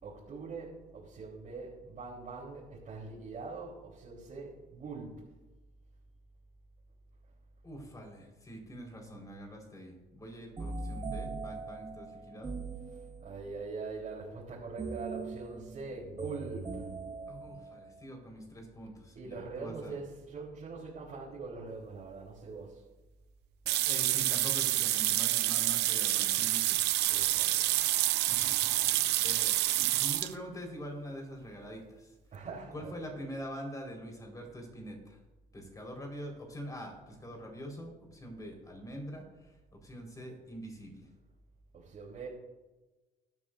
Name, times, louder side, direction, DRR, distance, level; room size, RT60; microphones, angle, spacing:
voice 1, 0.0-5.3 12.9-16.9 19.1-22.8 27.1-27.8 28.7-29.1 32.3-33.0 41.7-42.3, right 4 dB, 50° right, -5 dB, 4.0 m, -43 dB
voice 2, 7.6-12.5 17.3-20.0 23.8-26.8 27.6-32.1 32.7-35.2 35.5-39.6 39.8-41.1, equal, 20° left, 1 dB, 4.7 m, -45 dB
sound 1, 10.6-13.6 14.8-18.1, right 3 dB, 30° right, 1.7 m, -41 dB
sound 2, 23.7-30.3, right 15 dB, 85° right, 0.7 m, -28 dB
19.0 x 12.5 x 2.7 m, 1.1 s
cardioid pair, 110°, 17 cm